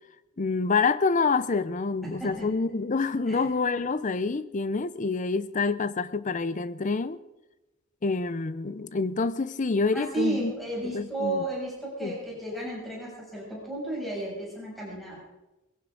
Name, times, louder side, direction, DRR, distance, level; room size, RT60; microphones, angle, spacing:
voice 1, 0.4-7.2 8.0-10.5 10.9-11.4 12.0-12.1, left 4 dB, 35° left, 0.6 m, -27 dB
voice 2, 2.0-2.5 3.3-3.5 9.9-15.2, right 1 dB, ahead, 6.9 m, -33 dB
20.5 x 16.5 x 3.9 m
head